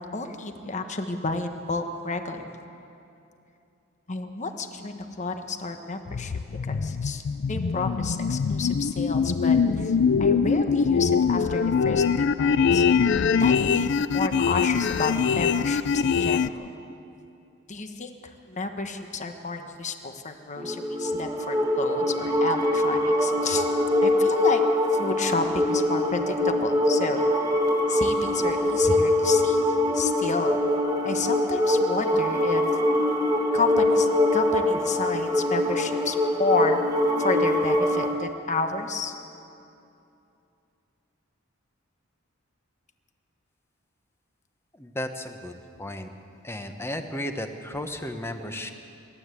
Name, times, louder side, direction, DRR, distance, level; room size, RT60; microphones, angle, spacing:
voice 1, 0.1-2.5 4.1-6.3 6.7-7.2 7.5-9.9 10.2-12.9 13.4-16.7 17.7-18.1 18.5-23.7 24.0-24.6 24.9-27.2 27.9-29.6 29.9-30.6 31.0-32.6 33.5-36.8 37.2-39.1, left 3 dB, 35° left, 6 dB, 1.2 m, -31 dB
sound 1, 6.1-16.5, left 6 dB, 60° left, 0.4 m, -23 dB
sound 2, 20.6-38.2, left 1 dB, 20° right, 1.2 m, -23 dB
voice 2, 44.8-46.1 46.4-48.7, left 1 dB, 10° left, 7 dB, 1.1 m, -34 dB
26.0 x 12.5 x 8.3 m, 2.7 s
head